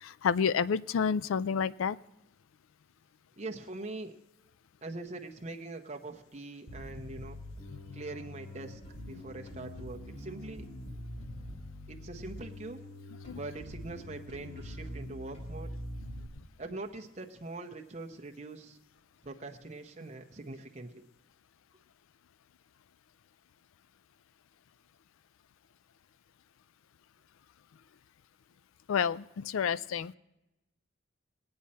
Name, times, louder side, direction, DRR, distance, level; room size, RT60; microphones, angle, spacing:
voice 1, 0.0-2.0 7.9-8.0 13.3-13.4 28.9-30.1, left 6 dB, 85° left, 18 dB, 0.4 m, -29 dB
voice 2, 3.4-4.2 4.8-7.4 7.9-10.7 11.9-12.8 13.3-15.7 16.6-18.8 19.2-21.0, right 2 dB, 35° right, 3 dB, 0.8 m, -43 dB
Bass guitar, 6.7-16.3, left 1 dB, 40° left, 3.0 m, -44 dB
20.0 x 8.7 x 4.2 m, 0.97 s
head